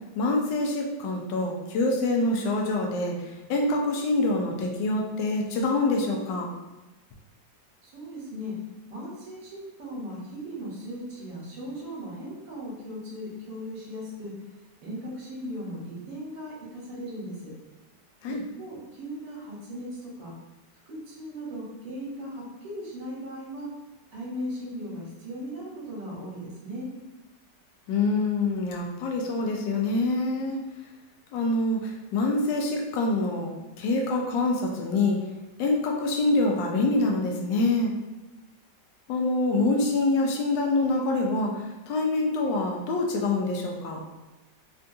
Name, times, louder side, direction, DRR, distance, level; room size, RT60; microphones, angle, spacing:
voice 1, 0.1-6.5 18.2-18.4 27.9-30.6 31.3-33.5 33.8-35.2 35.6-37.9 39.1-44.0, left 2 dB, 85° left, 1 dB, 1.2 m, -25 dB
voice 2, 7.8-8.6 8.9-14.3 14.8-17.5 18.3-20.3 20.9-23.7 24.1-26.9, equal, 80° right, -4 dB, 1.5 m, -38 dB
3.6 x 2.3 x 2.6 m, 1.1 s
omnidirectional pair, 1.9 m